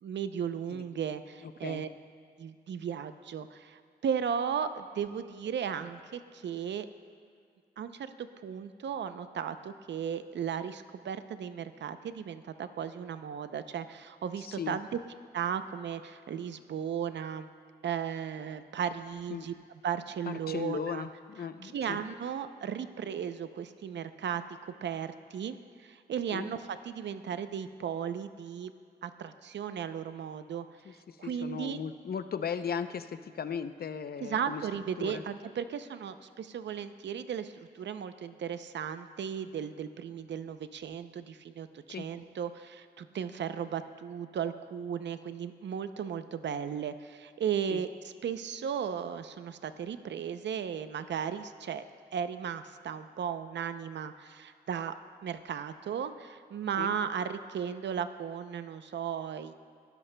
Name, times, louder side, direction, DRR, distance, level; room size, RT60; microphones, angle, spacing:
voice 1, 0.0-1.9 2.4-6.9 7.8-14.9 15.3-17.5 17.8-19.5 19.8-21.1 21.6-28.7 29.0-31.8 34.2-47.9 48.2-51.8 52.1-54.9 55.2-59.5, right 8 dB, 75° right, 11 dB, 0.6 m, -36 dB
voice 2, 1.4-1.8 14.4-14.8 19.3-19.5 20.3-22.0 26.3-26.5 31.1-34.6 35.0-35.2 41.9-42.1 47.7-47.8 56.8-56.9, left 7 dB, 60° left, 10 dB, 0.6 m, -37 dB
21.5 x 13.0 x 2.2 m, 2.3 s
cardioid pair, 70°, 18 cm